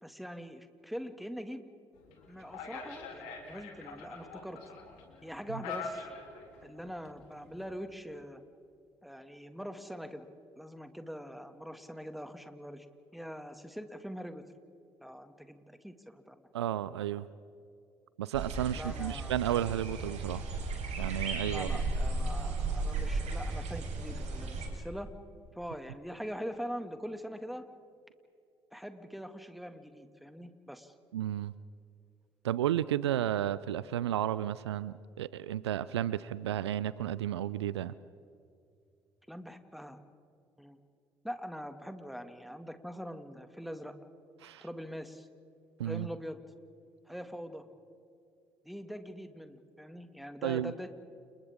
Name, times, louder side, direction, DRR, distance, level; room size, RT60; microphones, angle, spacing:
voice 1, 0.0-1.6 2.3-4.6 5.2-6.1 6.6-8.4 9.0-10.3 10.6-12.9 13.1-14.5 15.0-16.5 18.7-19.3 21.5-25.1 25.5-27.7 28.7-30.9 39.3-40.0 40.6-40.8 41.2-43.9 44.6-45.3 45.8-46.4 47.1-47.6 48.6-50.9, equal, ahead, 8 dB, 2.2 m, -43 dB
sound 1, 1.9-7.9, left 4 dB, 75° left, 3.3 m, -45 dB
voice 2, 16.5-17.3 18.2-20.5 21.0-21.8 31.1-31.5 32.4-37.9 44.4-44.6 45.8-46.1 50.4-50.7, right 11 dB, 85° right, 18 dB, 0.4 m, -32 dB
sound 2, 18.3-24.7, right 3 dB, 60° right, 5.1 m, -35 dB
30.0 x 28.5 x 3.7 m, 2.5 s
figure-of-eight pair, 45°, 14 cm